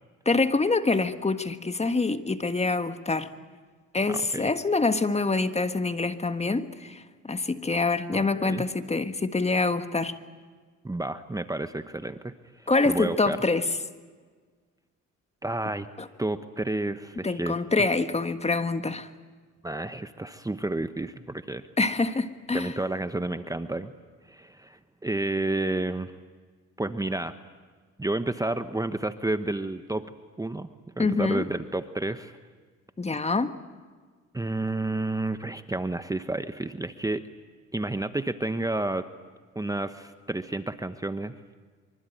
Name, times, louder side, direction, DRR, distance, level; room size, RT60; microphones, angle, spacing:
voice 1, 0.2-3.3 3.9-10.1 12.7-13.7 16.0-16.1 17.2-19.1 21.8-22.7 31.0-31.4 33.0-33.5, left 3 dB, 20° left, 10 dB, 1.5 m, -25 dB
voice 2, 4.1-4.5 8.1-8.6 10.8-13.4 15.4-15.9 16.2-17.6 19.6-21.6 22.5-23.9 24.2-26.1 26.8-27.3 28.0-30.0 30.4-30.7 31.0-32.3 34.3-37.3 37.7-39.0 39.5-41.3, right 2 dB, 10° right, 10 dB, 1.0 m, -30 dB
25.0 x 24.5 x 9.2 m, 1.5 s
cardioid pair, 90°, 30 cm